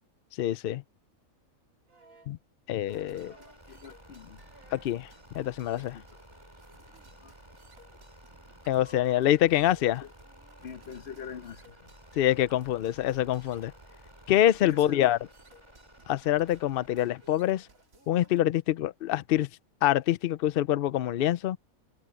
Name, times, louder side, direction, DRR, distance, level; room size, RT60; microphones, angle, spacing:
voice 1, 0.4-0.8 2.3-2.4 2.7-3.3 4.7-5.1 5.3-6.0 8.7-10.0 12.2-13.7 14.3-15.2 16.1-17.7 18.1-19.5 19.8-21.6, left 12 dB, 85° left, 0.5 m, -25 dB
sound 1, 1.9-2.4 3.2-3.7 4.5-5.0 6.2-6.3, right 3 dB, 80° right, 5.9 m, -58 dB
sound 2, 2.9-17.9, right 1 dB, 20° right, 5.4 m, -54 dB
sound 3, 2.9-18.4, right 2 dB, 65° right, 2.9 m, -59 dB
voice 2, 3.3-4.4 5.9-6.0 7.2-7.3 10.0-10.1 10.6-11.9 14.6-15.1, left 6 dB, 50° left, 1.1 m, -43 dB
omnidirectional pair, 1.5 m